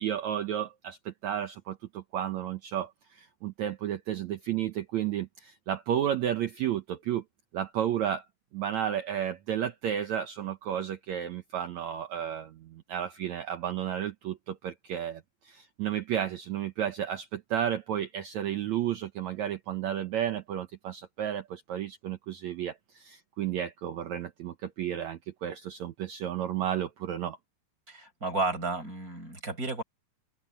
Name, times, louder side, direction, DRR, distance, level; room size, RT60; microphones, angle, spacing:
voice 1, 0.0-7.2 7.5-8.2 8.5-27.4, right 10 dB, 85° right, 1.6 m, -32 dB
voice 2, 27.9-29.8, right 3 dB, 20° right, 6.9 m, -32 dB
open air
omnidirectional pair, 4.7 m